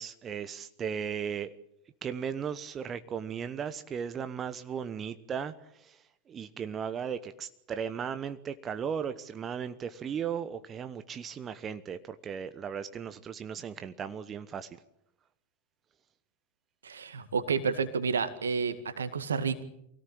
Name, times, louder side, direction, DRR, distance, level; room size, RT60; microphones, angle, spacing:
voice 1, 0.0-1.5 2.0-5.5 5.8-6.0 6.3-14.7, right 7 dB, 25° right, 11 dB, 1.1 m, -36 dB
voice 2, 16.8-19.6, right 5 dB, 70° right, 11 dB, 2.1 m, -30 dB
25.0 x 17.5 x 8.8 m, 0.77 s
figure-of-eight pair, 90°, 0 cm